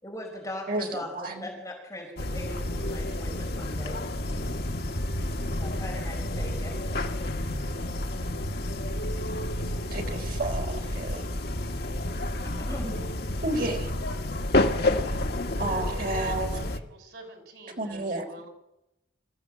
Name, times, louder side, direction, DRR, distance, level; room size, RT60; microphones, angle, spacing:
voice 1, 0.0-4.0 5.5-7.0 12.4-13.0, left 1 dB, 15° left, -1 dB, 4.9 m, -40 dB
voice 2, 0.7-1.5 9.9-11.2 13.4-13.9 15.6-16.5 17.8-18.3, right 2 dB, 55° right, 3 dB, 3.5 m, -31 dB
sound 1, 2.2-16.8, left 1 dB, 60° left, 1.4 m, -30 dB
voice 3, 15.4-18.5, right 1 dB, 75° right, 5 dB, 5.6 m, -45 dB
26.0 x 15.5 x 7.3 m, 0.91 s
head